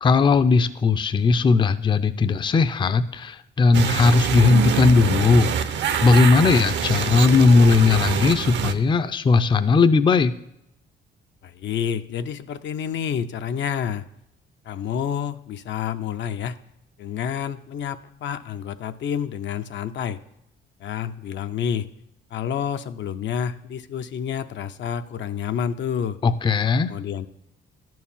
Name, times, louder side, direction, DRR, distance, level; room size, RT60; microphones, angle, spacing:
voice 1, 0.0-5.5 6.0-10.4 26.2-26.9, left 4 dB, 25° left, 11 dB, 0.4 m, -18 dB
sound 1, 3.7-8.7, right 8 dB, 65° right, 0.7 m, -25 dB
voice 2, 11.4-14.0 14.6-16.6 17.0-20.2 20.8-21.9 22.3-26.2 26.9-27.3, left 8 dB, 65° left, 9 dB, 0.6 m, -29 dB
11.0 x 4.6 x 7.1 m, 0.80 s
cardioid pair, 90°, 20 cm